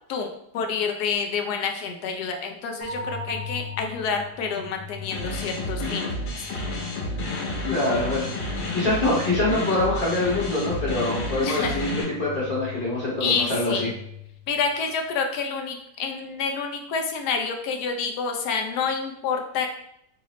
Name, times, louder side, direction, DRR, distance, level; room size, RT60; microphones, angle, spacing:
voice 1, 0.5-6.2 11.4-11.8 13.2-13.9 14.5-19.7, left 5 dB, 70° left, 4 dB, 1.0 m, -28 dB
sound 1, 2.8-14.8, left 5 dB, 65° right, 1.2 m, -40 dB
sound 2, 5.1-12.0, left 2 dB, 90° left, 1.6 m, -30 dB
voice 2, 7.7-8.3 8.7-13.9, left 2 dB, 35° left, -7 dB, 1.1 m, -24 dB
4.0 x 2.6 x 2.9 m, 0.74 s
omnidirectional pair, 1.9 m